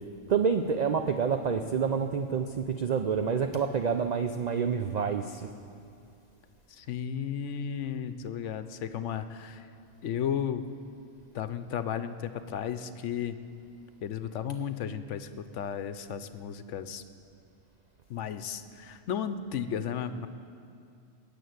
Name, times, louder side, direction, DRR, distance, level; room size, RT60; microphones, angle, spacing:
voice 1, 0.3-5.5, right 6 dB, 55° right, 7 dB, 0.5 m, -28 dB
voice 2, 6.7-9.7 10.0-10.7 11.3-13.4 14.0-17.0 18.1-20.3, left 8 dB, 75° left, 11 dB, 1.0 m, -34 dB
17.0 x 6.9 x 9.4 m, 2.4 s
omnidirectional pair, 1.3 m